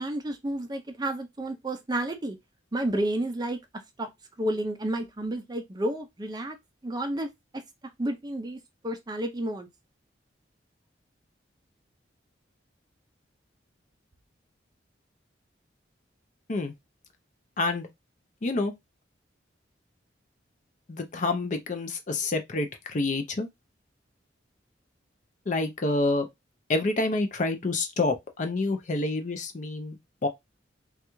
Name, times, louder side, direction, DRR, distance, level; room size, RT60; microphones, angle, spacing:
voice 1, 0.0-2.4 2.7-3.6 4.0-4.1 4.4-6.6 6.8-7.3 8.0-9.7, right 1 dB, 20° right, 0.4 m, -31 dB
voice 2, 17.6-17.9 18.4-18.7 20.9-23.5 25.5-26.3 26.7-30.0 30.2-30.3, left 2 dB, 40° left, 0.5 m, -28 dB
3.3 x 2.3 x 3.0 m
head